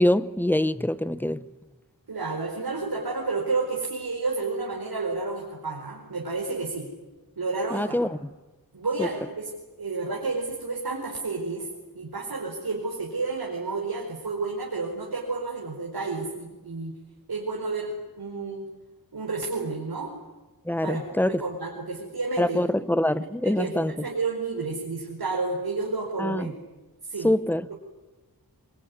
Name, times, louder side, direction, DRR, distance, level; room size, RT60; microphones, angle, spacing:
voice 1, 0.0-1.4 7.7-8.3 9.0-9.1 20.6-21.4 22.4-24.1 26.2-26.5 27.2-27.7, left 1 dB, 5° left, 1.0 m, -24 dB
voice 2, 2.1-6.9 7.4-8.1 8.7-9.5 9.8-11.7 11.9-16.9 17.3-18.7 19.1-20.1 20.8-21.1 21.4-22.6 23.0-23.1 23.4-26.5 27.1-27.3, right 3 dB, 70° right, 4.7 m, -31 dB
24.5 x 23.5 x 9.7 m
wide cardioid pair, 70°, 38 cm